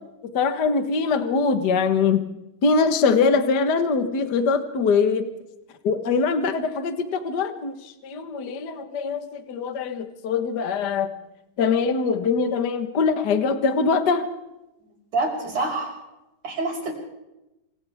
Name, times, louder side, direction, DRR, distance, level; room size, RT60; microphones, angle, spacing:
voice 1, 0.3-2.2 2.6-5.3 5.8-11.1 11.6-14.3, left 5 dB, 60° left, 7 dB, 1.1 m, -22 dB
voice 2, 15.1-15.9 16.4-16.9, right 3 dB, 60° right, -2 dB, 7.6 m, -26 dB
26.5 x 26.5 x 3.6 m, 0.96 s
omnidirectional pair, 4.0 m